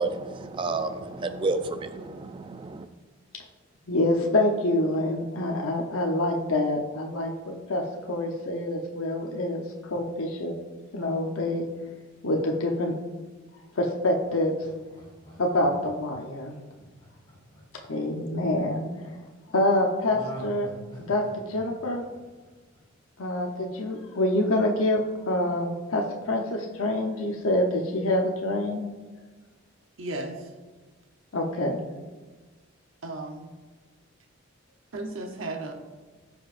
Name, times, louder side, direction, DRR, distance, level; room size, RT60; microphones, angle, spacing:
voice 1, 0.0-2.8, right 3 dB, 25° right, 9 dB, 0.3 m, -30 dB
voice 2, 3.9-7.8 8.1-10.5 10.9-11.6 12.2-12.9 13.8-14.5 15.4-16.5 17.9-18.9 19.5-20.7 21.0-21.2 21.5-22.0 23.2-28.9 31.3-31.8, left 1 dB, 80° left, 1 dB, 0.9 m, -26 dB
Laughter, 14.2-18.5 20.0-23.0 23.4-23.5, equal, 25° left, 2.3 m, -45 dB
voice 3, 30.0-30.5 33.0-33.5 34.9-35.7, right 2 dB, 70° right, 2 dB, 0.9 m, -34 dB
15.0 x 5.4 x 2.5 m, 1.3 s
head